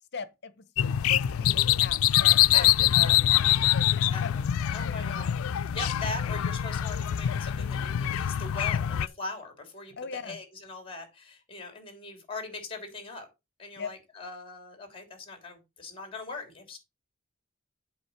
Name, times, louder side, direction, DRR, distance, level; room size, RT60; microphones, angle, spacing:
voice 1, 0.1-4.3 4.8-5.2 9.9-10.4 13.7-13.9, left 5 dB, 55° left, 1.0 m, -40 dB
sound 1, 0.8-9.1, left 12 dB, 90° left, 0.4 m, -24 dB
voice 2, 2.5-3.2 3.9-4.4 4.7-13.3 13.6-16.8, left 3 dB, 25° left, 3.1 m, -40 dB
8.0 x 5.2 x 5.8 m
head